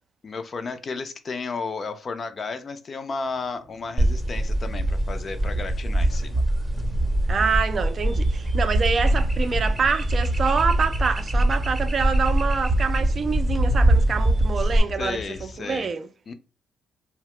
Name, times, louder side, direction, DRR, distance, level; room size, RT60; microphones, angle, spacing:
voice 1, 0.2-6.4 14.6-14.7 15.0-15.9 16.3-16.4, left 4 dB, 40° left, 0.4 m, -33 dB
Thunder, 3.2-15.8, left 2 dB, 75° left, 0.9 m, -39 dB
sound 1, 4.0-14.8, right 1 dB, 15° right, 0.7 m, -23 dB
voice 2, 7.3-16.1, right 5 dB, 45° right, 0.4 m, -26 dB
2.7 x 2.0 x 3.1 m
cardioid pair, 90°, 0 cm